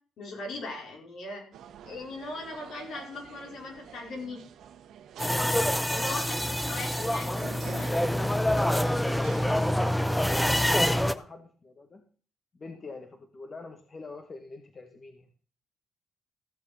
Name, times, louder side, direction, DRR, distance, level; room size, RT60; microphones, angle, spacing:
voice 1, 0.2-1.4 1.8-4.4 5.9-8.3, left 2 dB, 70° left, 0 dB, 5.0 m, -39 dB
sound 1, 1.5-11.0, right 9 dB, 75° right, 1.2 m, -48 dB
sound 2, 5.2-11.1, left 1 dB, 5° left, 0.8 m, -26 dB
voice 2, 9.5-12.0 12.5-15.3, left 3 dB, 35° left, 4 dB, 1.9 m, -45 dB
15.0 x 6.7 x 5.2 m, 0.42 s
cardioid pair, 90°, 0 cm